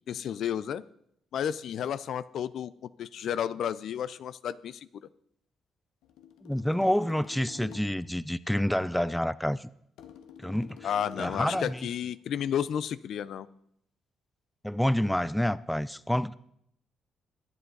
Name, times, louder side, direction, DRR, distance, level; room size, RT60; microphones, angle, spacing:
voice 1, 0.1-0.8 1.3-2.7 3.0-4.9 10.8-13.5, left 9 dB, 70° left, 0.5 m, -32 dB
sound 1, 6.0-8.1 10.0-12.0, left 9 dB, 90° left, 1.0 m, -48 dB
voice 2, 6.4-9.7 10.4-10.9 11.2-11.9 14.6-16.3, equal, 5° left, 0.4 m, -28 dB
21.5 x 8.2 x 4.0 m
cardioid pair, 90°, 0 cm